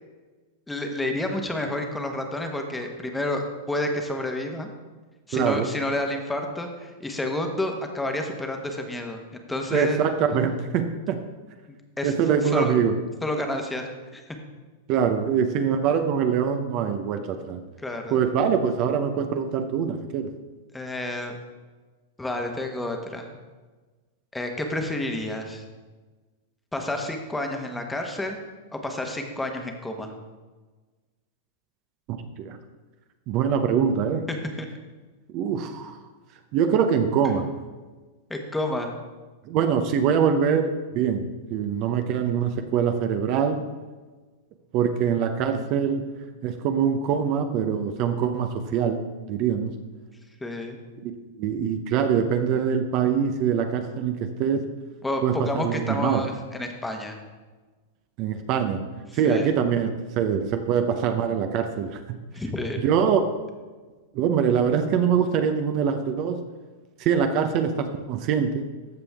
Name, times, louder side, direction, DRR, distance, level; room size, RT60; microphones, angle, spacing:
voice 1, 0.7-4.7 5.3-10.0 11.7-12.1 12.4-12.8 13.2-14.4 17.8-18.2 20.7-21.4 22.2-23.3 24.3-25.6 26.7-28.4 28.7-30.1 34.3-34.7 38.3-38.9 50.4-50.8 55.0-57.2 59.2-59.5 62.3-62.8, left 1 dB, 10° left, 4 dB, 1.2 m, -30 dB
voice 2, 5.3-5.7 9.7-11.2 12.0-12.9 14.9-17.6 18.1-20.3 32.1-32.6 33.3-34.3 35.3-36.0 36.5-37.5 39.5-43.6 44.7-46.1 46.4-49.0 49.3-49.7 51.0-51.1 51.4-54.6 55.2-56.2 58.2-58.8 59.1-59.9 60.1-62.0 62.8-63.2 64.1-66.4 67.0-68.6, right 7 dB, 45° right, 7 dB, 0.7 m, -24 dB
14.5 x 5.2 x 3.5 m, 1.3 s
hypercardioid pair, 125°, 0 cm